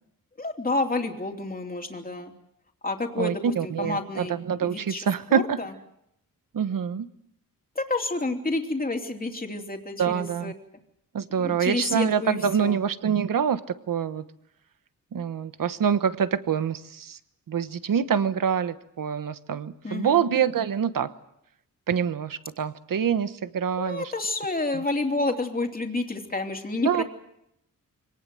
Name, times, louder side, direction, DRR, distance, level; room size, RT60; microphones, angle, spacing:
voice 1, 0.4-2.3 2.8-4.3 4.6-5.7 7.7-10.5 11.3-12.8 19.8-20.2 23.8-27.0, left 2 dB, 25° left, 3 dB, 3.1 m, -29 dB
voice 2, 3.2-5.6 6.5-7.1 10.0-10.5 11.1-13.6 13.9-14.2 15.1-17.2 17.5-21.1 21.9-24.0 26.8-27.0, right 7 dB, 70° right, 12 dB, 1.2 m, -25 dB
25.0 x 19.0 x 7.8 m, 0.78 s
wide cardioid pair, 105°, 34 cm